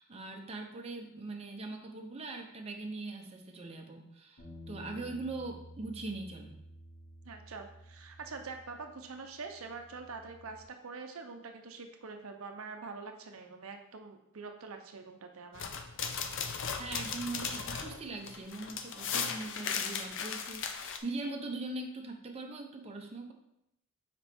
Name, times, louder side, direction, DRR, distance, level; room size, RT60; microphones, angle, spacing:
voice 1, 0.0-6.6 16.8-23.3, right 2 dB, 30° right, 2 dB, 0.7 m, -41 dB
sound 1, 4.4-10.6, equal, 75° left, 2.5 m, -52 dB
voice 2, 7.2-15.7, right 4 dB, 65° right, 5 dB, 0.7 m, -45 dB
sound 2, 15.5-21.0, left 6 dB, 60° left, 0.6 m, -37 dB
6.9 x 5.1 x 3.5 m, 0.80 s
head